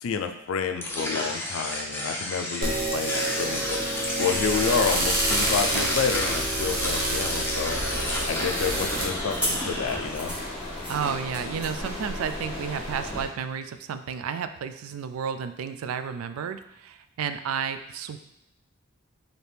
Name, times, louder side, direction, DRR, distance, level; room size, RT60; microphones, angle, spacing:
voice 1, 0.0-3.8 4.2-7.8 8.3-10.3, left 6 dB, 75° left, 7 dB, 0.4 m, -29 dB
sound 1, 0.8-10.0, left 1 dB, 10° left, 0.6 m, -31 dB
sound 2, 2.6-9.0, right 1 dB, 45° right, 0.9 m, -28 dB
sound 3, 7.7-13.2, left 1 dB, 5° right, 1.4 m, -33 dB
voice 2, 10.9-18.2, right 7 dB, 90° right, 10 dB, 0.3 m, -32 dB
4.3 x 2.8 x 3.3 m, 0.80 s
head